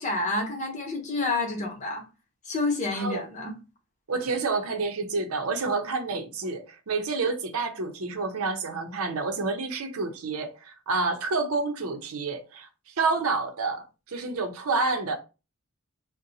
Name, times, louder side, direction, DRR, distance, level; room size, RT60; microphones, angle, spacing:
voice 1, 0.0-2.0 2.4-3.5, left 2 dB, 35° left, 0.8 m, -29 dB
voice 2, 2.9-3.3 4.1-12.7 13.0-15.2, right 3 dB, 80° right, 0.6 m, -29 dB
2.7 x 2.1 x 3.9 m
head